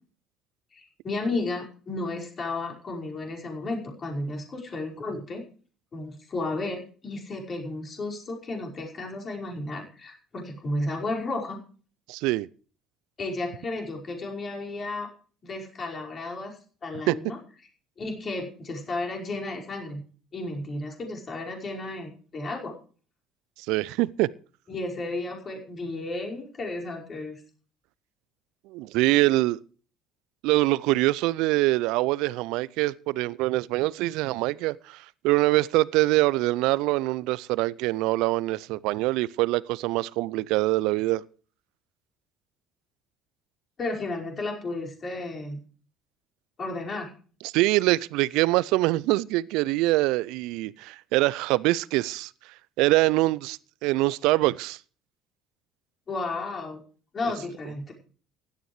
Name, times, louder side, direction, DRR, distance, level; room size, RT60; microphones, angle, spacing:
voice 1, 0.7-5.4 5.9-11.6 13.2-15.1 15.4-17.4 18.0-20.0 20.3-22.7 24.7-27.4 43.8-45.6 46.6-47.1 56.1-56.8 57.1-57.9, left 2 dB, 35° left, 5.2 m, -33 dB
voice 2, 12.1-12.5 17.1-17.2 23.7-24.3 28.7-29.6 30.4-41.2 47.4-52.3 52.8-54.8, right 19 dB, 65° right, 0.5 m, -24 dB
16.0 x 12.5 x 3.2 m
figure-of-eight pair, 60°, 0 cm